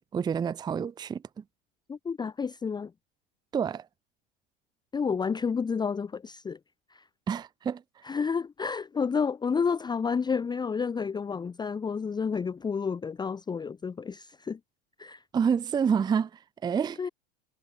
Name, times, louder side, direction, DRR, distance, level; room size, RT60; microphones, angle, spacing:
voice 1, 0.1-1.4 3.5-3.9 7.3-7.8 15.3-17.1, right 7 dB, 15° right, 0.6 m, -28 dB
voice 2, 1.9-2.9 4.9-6.6 6.9-7.1 8.0-14.6 15.0-15.2 17.0-17.1, left 5 dB, 15° left, 0.9 m, -30 dB
figure-of-eight pair, 80°, 29 cm